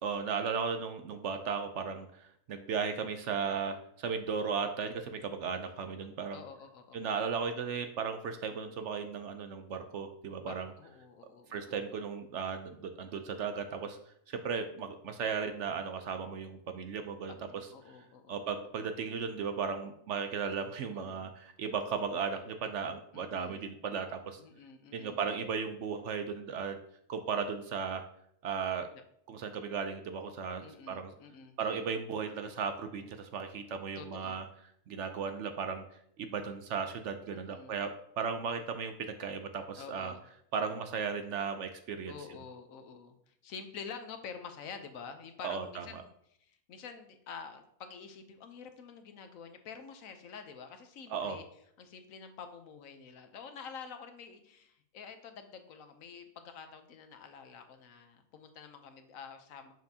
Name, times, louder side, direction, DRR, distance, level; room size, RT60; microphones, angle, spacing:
voice 1, 0.0-6.4 6.9-10.7 11.5-14.0 14.3-17.4 18.3-24.4 24.9-26.8 27.1-28.0 28.4-28.9 29.3-31.1 31.6-34.5 34.9-35.8 36.2-37.9 38.2-40.1 40.5-42.1 45.4-46.0 51.1-51.4, right 6 dB, 65° right, 7 dB, 0.8 m, -36 dB
voice 2, 6.3-7.1 10.4-11.8 17.3-18.4 20.9-21.3 23.1-23.7 24.4-25.2 30.6-31.6 33.9-34.4 37.3-37.7 39.8-40.2 42.1-46.0 46.4-51.4 51.8-59.7, left 6 dB, 70° left, 7 dB, 1.1 m, -48 dB
6.8 x 6.0 x 2.8 m, 0.70 s
omnidirectional pair, 1.5 m